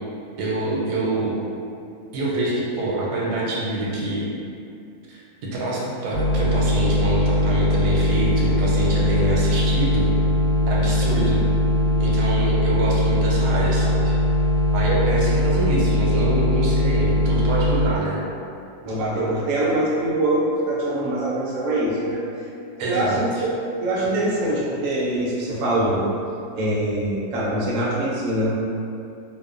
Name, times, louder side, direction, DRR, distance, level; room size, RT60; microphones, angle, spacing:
voice 1, 0.4-1.4 2.1-4.3 5.1-10.1 10.7-11.4 12.0-14.1 14.7-18.2 22.8-23.2, right 1 dB, 85° right, -4 dB, 1.1 m, -25 dB
sound 1, 6.1-17.9, left 1 dB, 75° left, 1.0 m, -20 dB
voice 2, 18.8-22.5 22.7-23.5 23.8-26.1 26.5-28.5, right 1 dB, 70° right, -6 dB, 0.8 m, -23 dB
2.7 x 2.1 x 2.4 m, 2.5 s
omnidirectional pair, 1.7 m